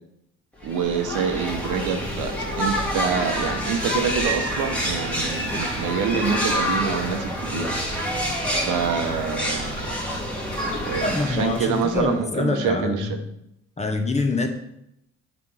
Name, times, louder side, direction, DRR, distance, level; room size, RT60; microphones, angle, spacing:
sound 1, 0.6-12.2, equal, 5° left, 1.9 m, -27 dB
voice 1, 0.6-7.7 8.7-9.8 10.9-13.2, right 6 dB, 90° right, 6 dB, 0.9 m, -26 dB
voice 2, 11.0-13.2 13.8-14.5, left 3 dB, 20° left, 5 dB, 1.0 m, -25 dB
7.9 x 3.3 x 5.5 m, 0.81 s
cardioid pair, 90°, 30 cm